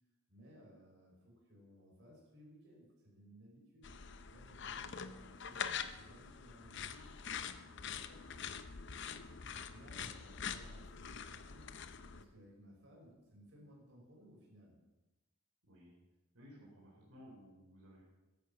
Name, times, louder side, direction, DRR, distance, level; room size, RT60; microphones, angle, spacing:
voice 1, 0.3-3.9 4.3-8.5 9.5-11.7 12.1-14.8 16.4-16.5, equal, 55° right, -3 dB, 5.9 m, -60 dB
sound 1, 3.8-12.2, left 7 dB, 55° left, 0.7 m, -45 dB
voice 2, 15.6-15.9 16.3-18.0, equal, 85° right, -4 dB, 4.0 m, -57 dB
14.5 x 10.5 x 6.0 m, 1.1 s
head